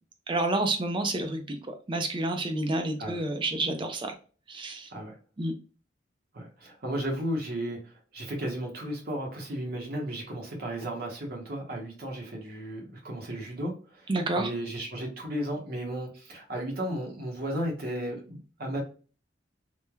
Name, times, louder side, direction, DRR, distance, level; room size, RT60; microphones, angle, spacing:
voice 1, 0.3-4.1 4.5-4.9 5.4-5.5 14.1-14.5, right 2 dB, 25° right, 5 dB, 0.4 m, -29 dB
voice 2, 6.3-14.1 14.4-18.8, right 1 dB, 55° right, 0 dB, 0.8 m, -34 dB
3.1 x 2.1 x 2.2 m, 0.37 s
head